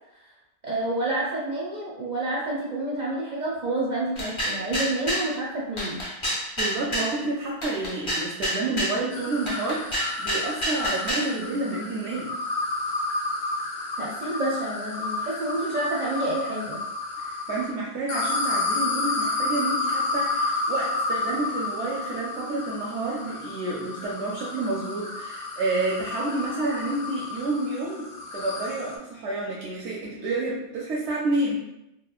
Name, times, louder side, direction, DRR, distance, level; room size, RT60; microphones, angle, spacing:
voice 1, 0.6-6.0 14.0-16.8, right 2 dB, 55° right, -5 dB, 0.5 m, -29 dB
sound 1, 4.2-5.3 5.8-7.1 7.6-9.0 9.5-11.3, equal, 40° left, 0.5 m, -28 dB
voice 2, 6.6-12.4 17.2-31.6, right 2 dB, 80° right, -4 dB, 0.9 m, -29 dB
sound 2, 9.1-17.7 18.1-29.0, left 2 dB, 70° left, 0.8 m, -31 dB
2.9 x 2.1 x 2.3 m, 0.88 s
omnidirectional pair, 1.2 m